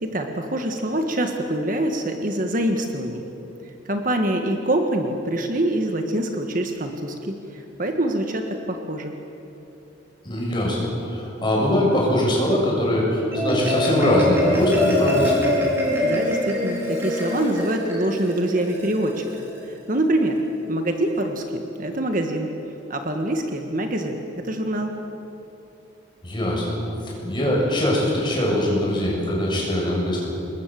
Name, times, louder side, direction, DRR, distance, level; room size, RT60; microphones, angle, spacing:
voice 1, 0.0-3.3 3.8-9.1 16.0-20.4 20.7-22.5 22.9-24.9, right 1 dB, 45° right, 4 dB, 1.7 m, -25 dB
voice 2, 10.2-15.3 26.2-26.8 27.0-30.2, left 1 dB, 25° left, -3 dB, 7.4 m, -22 dB
Marimba xylophone, 13.1-19.6, left 1 dB, 10° right, 5.0 m, -24 dB
26.5 x 21.5 x 7.8 m, 2.9 s
head